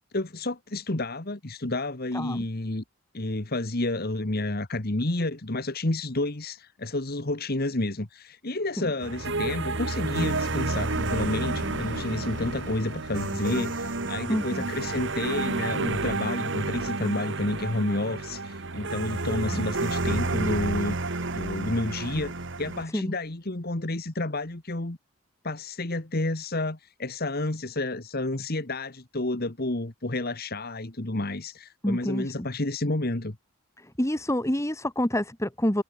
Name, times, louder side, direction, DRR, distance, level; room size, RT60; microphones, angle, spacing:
voice 1, 0.1-2.8 3.1-21.0 21.3-22.3 22.6-25.0 25.4-33.3, left 2 dB, 45° left, 1.6 m, -30 dB
voice 2, 2.1-2.4 8.8-8.9 14.3-14.6 19.5-19.6 22.9-23.1 31.8-32.5 33.8-35.8, left 1 dB, 15° left, 1.9 m, -28 dB
sound 1, 8.5-18.9, left 1 dB, 80° left, 7.2 m, -46 dB
sound 2, 9.0-22.8, right 3 dB, 55° right, 1.7 m, -30 dB
head